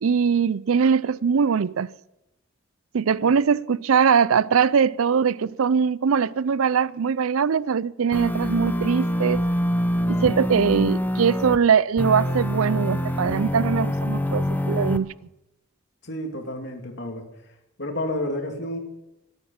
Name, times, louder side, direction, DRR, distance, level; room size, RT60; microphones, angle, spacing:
voice 1, 0.0-1.9 2.9-9.4 10.1-15.1, right 6 dB, 80° right, 0.5 m, -21 dB
sound 1, 8.1-11.6 12.0-15.0, equal, 10° left, 0.7 m, -25 dB
voice 2, 16.0-17.3 17.8-18.8, left 1 dB, 55° left, 2.8 m, -30 dB
25.0 x 8.9 x 5.7 m
head